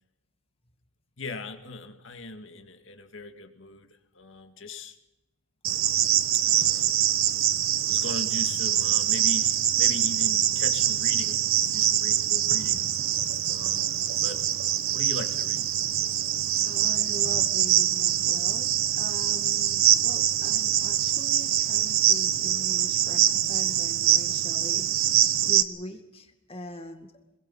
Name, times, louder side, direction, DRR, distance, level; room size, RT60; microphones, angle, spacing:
voice 1, 1.2-5.0 6.5-7.0 7.9-11.4 11.7-12.8 13.5-14.4 14.9-15.7, left 2 dB, 65° left, 6 dB, 2.1 m, -39 dB
Cricket, 5.6-25.6, right 11 dB, 90° right, 1.1 m, -24 dB
voice 2, 16.6-25.2 25.4-27.1, equal, 30° left, 6 dB, 2.2 m, -42 dB
26.0 x 22.0 x 5.7 m, 0.97 s
head